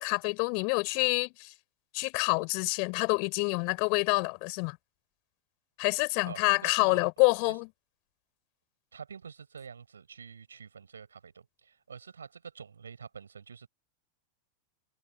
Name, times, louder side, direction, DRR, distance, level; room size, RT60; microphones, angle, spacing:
voice 1, 0.0-1.5 1.9-4.8 5.8-7.7, left 40 dB or more, 45° left, 4.6 m, -27 dB
voice 2, 6.3-7.1 7.5-7.6 8.9-13.7, right 6 dB, 70° right, 5.6 m, -47 dB
figure-of-eight pair, 90°, 0 cm